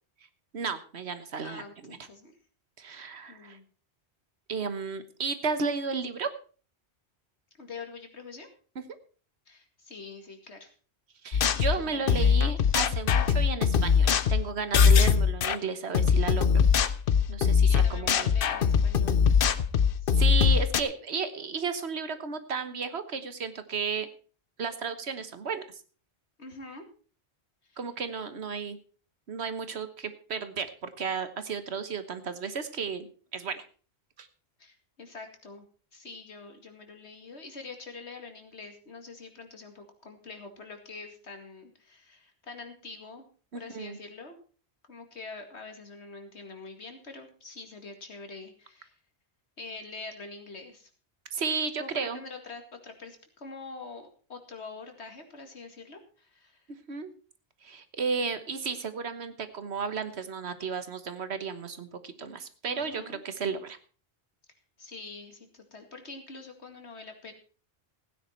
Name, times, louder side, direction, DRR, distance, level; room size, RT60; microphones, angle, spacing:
voice 1, 0.5-2.0 2.8-3.6 4.5-6.3 11.2-16.6 17.3-18.3 20.2-24.1 24.6-25.6 27.8-28.8 29.3-33.6 34.2-34.3 43.5-44.0 51.3-52.2 56.7-57.1 57.6-63.8, right 5 dB, 75° right, 11 dB, 1.5 m, -33 dB
voice 2, 1.4-2.3 3.3-3.6 7.6-8.5 9.5-10.7 11.8-12.5 17.6-19.3 20.0-20.3 26.4-26.9 27.7-27.8 34.6-35.6 35.9-43.2 43.5-44.4 44.9-49.0 49.6-50.9 51.8-56.6 62.6-63.2 64.8-67.3, left 4 dB, 80° left, 5 dB, 2.5 m, -45 dB
sound 1, 11.3-15.6 15.9-20.8, left 6 dB, 60° left, 0.9 m, -22 dB
15.5 x 9.8 x 4.4 m, 0.39 s
omnidirectional pair, 1.1 m